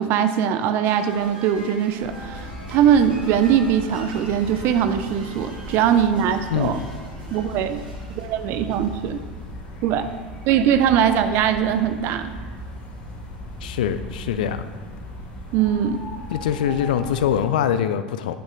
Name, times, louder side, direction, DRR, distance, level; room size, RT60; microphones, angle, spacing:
voice 1, 0.0-6.8 7.3-7.8 8.1-9.2 9.8-10.1 10.5-12.3 15.5-16.1, right 9 dB, 50° right, 10 dB, 0.6 m, -21 dB
sound 1, 0.8-9.4, right 1 dB, 80° right, 2.8 m, -42 dB
sound 2, 2.0-17.4, equal, 40° left, 2.8 m, -37 dB
voice 2, 13.6-14.6 16.3-18.3, left 9 dB, 65° left, 11 dB, 0.5 m, -23 dB
9.3 x 7.4 x 3.7 m, 1.4 s
figure-of-eight pair, 75°, 5 cm